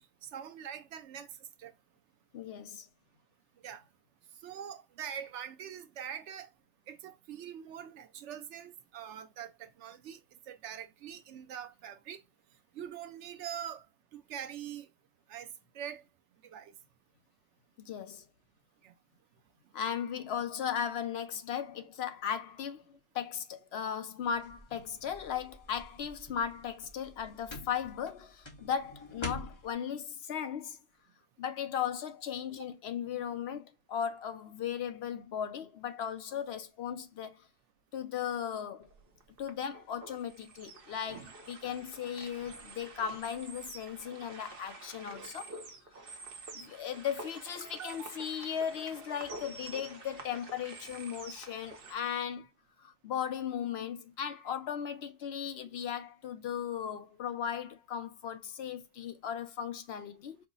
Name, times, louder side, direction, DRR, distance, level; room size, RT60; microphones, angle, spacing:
voice 1, 0.2-1.3 1.6-1.7 3.6-3.8 4.4-6.5 6.9-12.2 12.7-13.9 14.1-14.9 15.3-16.0 16.4-16.7 18.8-18.9 47.6-48.2, right 9 dB, 80° right, 0.9 m, -44 dB
voice 2, 2.3-2.9 17.8-18.2 19.7-30.8 31.4-37.5 37.9-38.9 39.4-45.6 46.5-52.5 52.8-60.4, left 8 dB, 65° left, 0.8 m, -37 dB
sound 1, 24.2-29.7, left 2 dB, 25° left, 0.8 m, -47 dB
sound 2, 38.8-51.9, right 3 dB, 55° right, 1.0 m, -48 dB
4.6 x 2.0 x 3.8 m
omnidirectional pair, 1.2 m